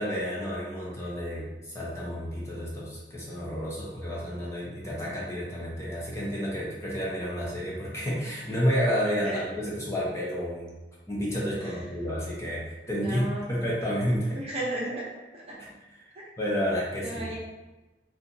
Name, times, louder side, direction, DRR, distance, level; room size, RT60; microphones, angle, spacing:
voice 1, 0.0-10.7 11.1-14.4 15.5-17.3, equal, 15° left, -6 dB, 0.8 m, -30 dB
voice 2, 12.9-13.5 14.3-15.1 15.5-15.6 17.0-17.4, right 1 dB, 35° right, -5 dB, 0.8 m, -33 dB
2.8 x 2.4 x 3.9 m, 1.1 s
head